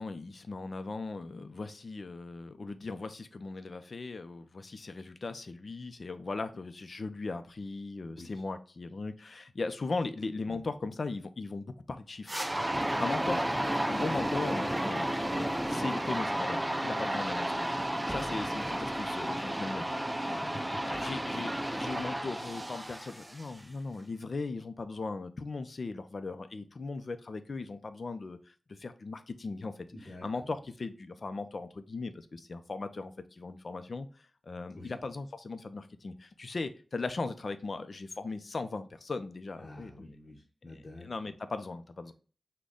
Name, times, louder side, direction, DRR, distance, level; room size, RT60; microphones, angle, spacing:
voice 1, 0.0-12.4 12.8-20.5 20.8-29.9 30.2-40.2 41.0-42.1, left 3 dB, 55° left, 10 dB, 0.5 m, -38 dB
sound 1, 12.3-23.6, right 1 dB, 10° right, 0.4 m, -32 dB
voice 2, 20.3-21.1 29.9-30.3 34.7-34.9 39.6-41.1, left 1 dB, 35° left, -2 dB, 0.9 m, -48 dB
6.2 x 2.2 x 3.6 m, 0.38 s
wide cardioid pair, 100°, 0 cm